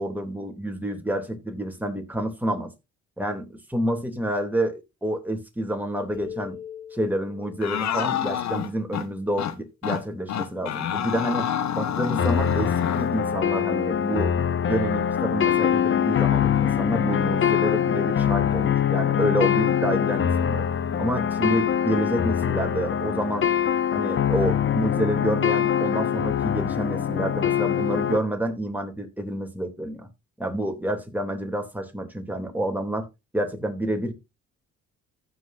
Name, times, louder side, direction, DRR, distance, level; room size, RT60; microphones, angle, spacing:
voice 1, 0.0-2.7 3.2-6.6 6.9-14.3 14.6-20.6 21.0-23.5 23.9-30.1 30.4-33.1 33.3-34.1, right 1 dB, 5° right, 2.9 m, -28 dB
sound 1, 6.1-9.7, left 8 dB, 15° left, 1.9 m, -42 dB
sound 2, 7.6-9.1 9.4-9.5 9.8-10.0 10.3-13.1, left 9 dB, 65° left, 1.1 m, -28 dB
sound 3, 12.2-28.2, left 9 dB, 40° left, 0.8 m, -23 dB
15.0 x 6.3 x 2.6 m
cardioid pair, 90°, 30 cm